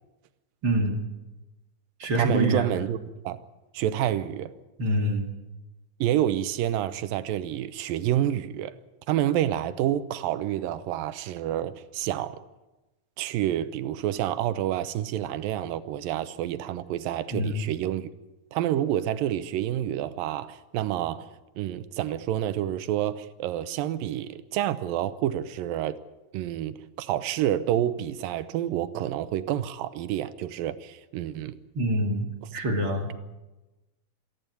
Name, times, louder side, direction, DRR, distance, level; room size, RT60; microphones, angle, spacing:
voice 1, 0.6-1.0 2.0-2.8 4.8-5.3 17.3-17.6 31.7-33.1, right 1 dB, 40° right, 2.8 m, -26 dB
voice 2, 2.1-3.0 3.2-3.4 3.7-4.5 6.0-8.8 9.1-12.4 13.2-18.1 18.5-21.3 21.6-26.0 26.3-31.6, right 12 dB, 90° right, 2.6 m, -28 dB
27.0 x 10.5 x 9.2 m
omnidirectional pair, 3.9 m